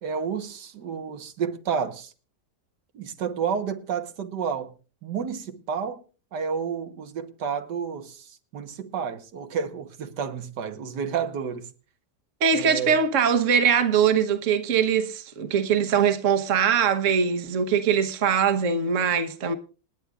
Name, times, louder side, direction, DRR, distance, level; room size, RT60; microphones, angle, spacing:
voice 1, 0.0-2.1 2.9-4.7 5.0-6.0 6.3-11.7 12.5-13.0, right 6 dB, 90° right, 1.8 m, -30 dB
voice 2, 12.4-19.5, right 7 dB, 50° right, 1.4 m, -22 dB
28.5 x 9.7 x 2.4 m
omnidirectional pair, 1.7 m